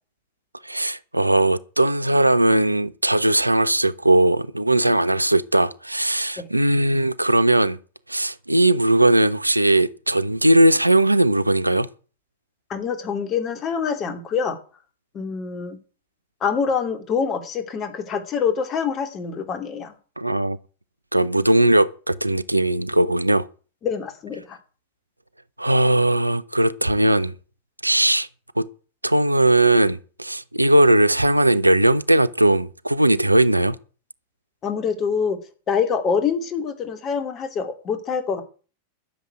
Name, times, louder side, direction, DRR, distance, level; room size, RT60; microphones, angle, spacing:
voice 1, 0.6-7.8 8.1-11.9 20.2-20.6 21.1-23.5 25.6-27.3 27.8-28.3 28.6-28.7 29.0-33.8, right 1 dB, 85° right, 0.6 m, -19 dB
voice 2, 12.7-14.6 15.1-15.8 16.4-19.9 23.8-24.6 34.6-35.4 35.7-38.4, left 6 dB, 30° left, 2.8 m, -25 dB
12.0 x 7.3 x 8.8 m
figure-of-eight pair, 90°, 0 cm